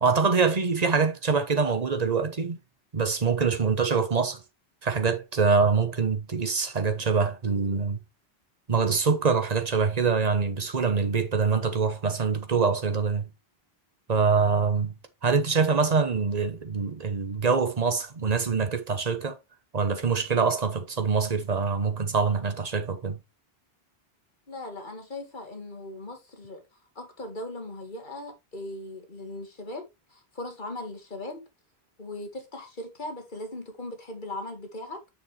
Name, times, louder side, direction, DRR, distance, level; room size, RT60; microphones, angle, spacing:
voice 1, 0.0-2.6 2.9-4.4 4.8-8.0 8.7-13.3 14.1-14.9 15.2-19.4 19.7-23.2, right 5 dB, 40° right, 1.2 m, -24 dB
voice 2, 24.5-26.6 27.0-31.4 32.0-35.0, left 2 dB, 50° left, 2.1 m, -39 dB
6.7 x 6.5 x 3.2 m
omnidirectional pair, 1.0 m